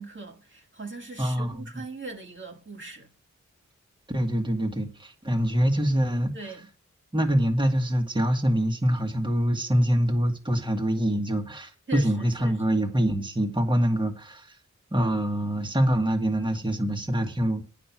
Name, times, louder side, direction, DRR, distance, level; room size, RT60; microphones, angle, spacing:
voice 1, 0.0-3.1 6.3-6.7 11.9-12.8, right 2 dB, 40° right, 1.8 m, -40 dB
voice 2, 1.2-1.6 4.1-6.3 7.1-14.6 14.9-17.6, equal, 15° right, 1.7 m, -25 dB
9.2 x 6.0 x 7.2 m
wide cardioid pair, 60°, 30 cm